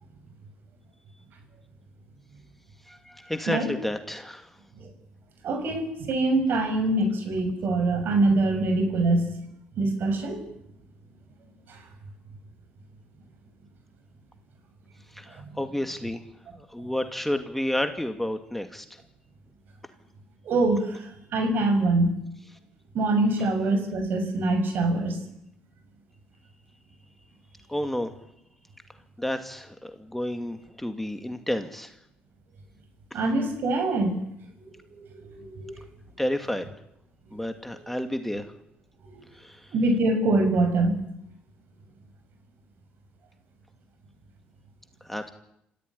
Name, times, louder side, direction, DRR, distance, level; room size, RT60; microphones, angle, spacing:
voice 1, 2.9-4.5 15.1-16.2 16.6-18.9 27.7-28.1 29.2-31.9 36.2-36.7 37.3-38.5 39.3-39.7 45.0-45.3, left 1 dB, 5° left, 7 dB, 2.2 m, -31 dB
voice 2, 5.4-9.3 9.8-10.4 11.7-11.8 15.4-15.6 20.4-22.2 22.9-25.2 33.1-34.1 34.6-35.8 39.1-39.2 39.7-41.0, right 2 dB, 60° right, 7 dB, 6.5 m, -24 dB
27.0 x 15.0 x 9.9 m, 0.78 s
supercardioid pair, 85°, 4 cm